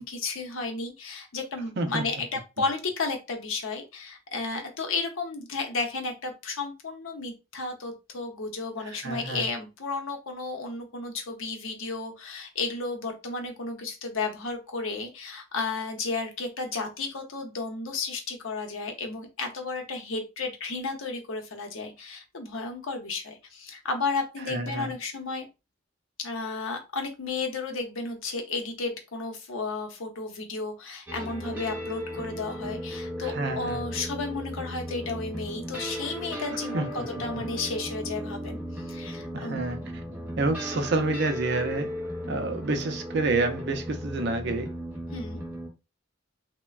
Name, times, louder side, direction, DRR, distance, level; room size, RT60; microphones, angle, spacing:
voice 1, 0.0-25.5 26.2-39.6 45.1-45.4, left 3 dB, 75° left, 0.7 m, -33 dB
voice 2, 8.8-9.5 24.5-24.9 33.2-33.8 36.7-36.9 37.1-37.2 39.3-39.8 40.4-41.9 42.3-44.7, right 2 dB, 55° right, 0.4 m, -28 dB
sound 1, 31.1-45.7, equal, 10° right, 0.7 m, -36 dB
3.2 x 2.1 x 2.3 m
head